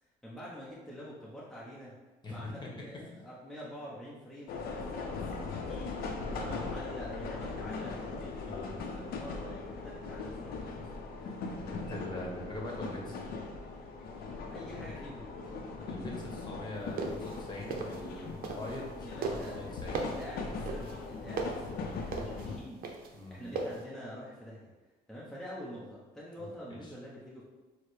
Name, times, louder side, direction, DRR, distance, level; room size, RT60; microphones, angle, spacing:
voice 1, 0.0-1.9 2.3-8.3 8.8-10.9 14.3-15.3 19.0-22.8 23.3-24.7 25.1-27.4, equal, ahead, -7 dB, 0.8 m, -46 dB
voice 2, 2.2-2.8 8.4-8.8 11.2-13.2 15.8-20.0 22.3-22.6 23.1-23.7 26.7-26.9, left 1 dB, 25° left, -2 dB, 1.1 m, -43 dB
sound 1, 4.5-22.6, left 4 dB, 65° left, 0.6 m, -40 dB
sound 2, 16.8-18.9 19.2-23.8, right 4 dB, 60° right, 0.6 m, -37 dB
6.3 x 2.1 x 3.2 m, 1.2 s
cardioid pair, 110°, 17 cm